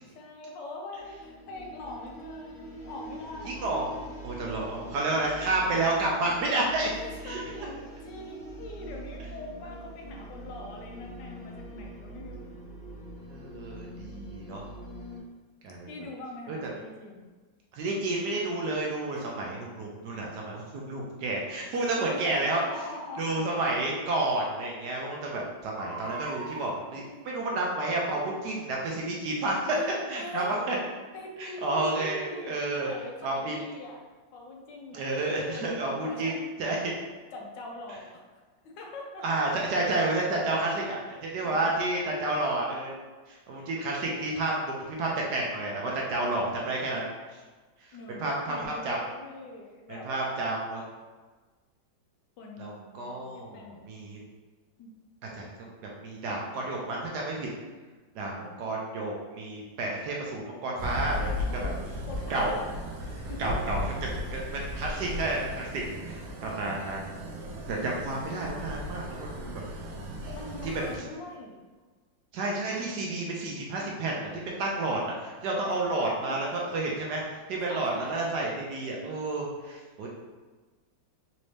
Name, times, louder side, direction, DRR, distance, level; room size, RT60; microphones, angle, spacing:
voice 1, 0.0-3.7 4.4-4.9 6.9-12.4 15.9-17.2 22.0-23.4 29.7-30.9 31.1-34.0 34.3-35.0 35.5-36.5 37.3-38.2 38.6-39.3 40.3-40.6 41.3-41.7 47.9-50.6 52.4-54.0 54.8-55.0 58.2-58.8 61.5-62.6 63.0-63.6 70.3-71.6 75.7-75.8 76.3-76.5 77.6-78.3, left 2 dB, 75° left, 0 dB, 1.2 m, -43 dB
sound 1, 0.9-15.2, right 1 dB, 50° left, 0.9 m, -43 dB
voice 2, 3.5-3.9 4.2-6.9 7.2-7.4 13.3-14.6 15.6-15.9 16.5-16.7 17.7-22.6 23.2-29.6 30.1-30.8 31.4-32.9 33.2-33.5 34.9-36.3 36.6-36.9 39.2-40.7 41.1-42.9 43.3-47.0 47.8-49.0 49.9-50.8 52.6-53.6 53.9-54.2 55.3-57.5 58.1-61.5 62.3-62.5 63.4-67.1 67.7-69.5 70.6-71.1 72.3-74.3 74.6-80.1, right 2 dB, 70° right, -2 dB, 1.1 m, -30 dB
Crying sobbing, 19.1-19.3 21.7-21.9 23.5-23.6 24.1-24.2 24.5-24.6 25.6-26.7 27.6-28.0 28.5-28.6, right 3 dB, 50° right, 1.0 m, -41 dB
sound 2, 60.8-71.0, left 1 dB, 90° right, 1.4 m, -36 dB
4.1 x 2.6 x 3.1 m, 1.3 s
omnidirectional pair, 2.0 m